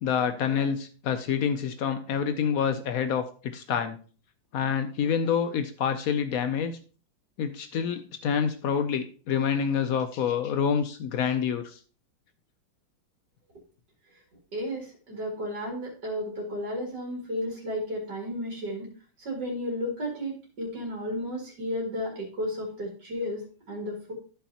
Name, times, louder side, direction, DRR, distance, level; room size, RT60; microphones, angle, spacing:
voice 1, 0.0-4.0 4.5-6.8 7.4-11.8, left 7 dB, 85° left, 9 dB, 0.7 m, -27 dB
voice 2, 14.5-18.9 19.2-20.3 20.6-24.1, equal, 55° right, -2 dB, 2.9 m, -33 dB
14.0 x 5.7 x 2.8 m, 0.40 s
omnidirectional pair, 2.2 m